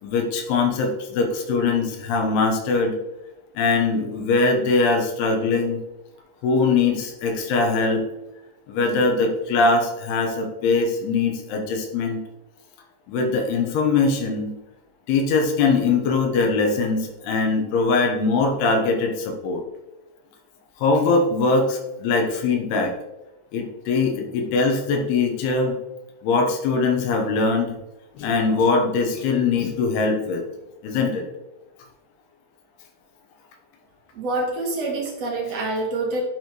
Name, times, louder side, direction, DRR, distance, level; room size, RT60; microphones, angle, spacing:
voice 1, 0.0-3.0 3.6-5.8 6.4-8.0 8.7-12.2 13.1-14.6 15.1-19.6 20.8-22.9 23.5-25.8 26.2-27.7 28.2-30.4 30.8-31.3, left 4 dB, 90° left, 3 dB, 3.0 m, -21 dB
voice 2, 34.1-36.2, right 2 dB, 60° right, -2 dB, 1.7 m, -26 dB
11.0 x 4.6 x 3.0 m, 0.99 s
omnidirectional pair, 4.6 m